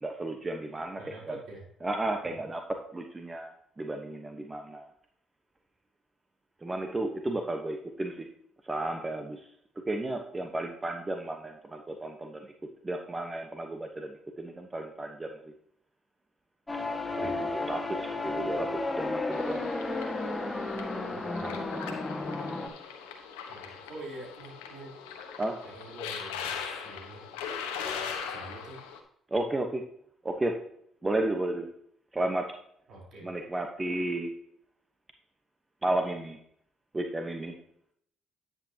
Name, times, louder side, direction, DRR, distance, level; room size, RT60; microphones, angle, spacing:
voice 1, 0.0-1.0 1.3-1.4 1.8-4.9 6.6-8.3 8.6-9.4 9.9-12.5 12.8-15.4 17.2-19.7 21.4-22.0 25.4-25.6 29.3-29.9 30.2-30.6 31.0-31.7 32.1-32.5 33.2-34.3 35.8-36.4 36.9-37.5, right 1 dB, 25° right, 4 dB, 1.1 m, -33 dB
voice 2, 1.0-1.7 2.2-2.4 17.1-17.7 21.1-21.5 23.5-25.0 25.6-27.3 27.5-27.7 28.3-28.8 32.9-33.3, right 2 dB, 65° right, -1 dB, 3.8 m, -46 dB
sound 1, 16.7-22.7, left 2 dB, 20° left, 1.6 m, -33 dB
sound 2, 19.3-29.0, left 7 dB, 90° left, 1.1 m, -40 dB
10.0 x 8.2 x 2.9 m, 0.69 s
hypercardioid pair, 55°, 0 cm